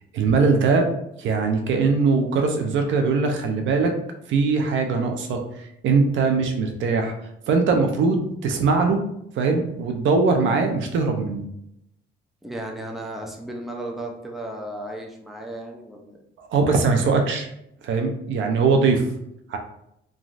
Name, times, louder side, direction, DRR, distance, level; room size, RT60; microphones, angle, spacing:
voice 1, 0.1-0.9 1.2-3.9 4.3-5.4 5.8-7.1 7.5-9.0 9.4-11.5 16.4-17.5 17.8-19.0 19.5-19.6, right 4 dB, 75° right, 4 dB, 0.5 m, -21 dB
voice 2, 12.4-16.2, right 1 dB, ahead, 0 dB, 0.5 m, -34 dB
3.1 x 2.4 x 2.4 m, 0.78 s
cardioid pair, 90°, 20 cm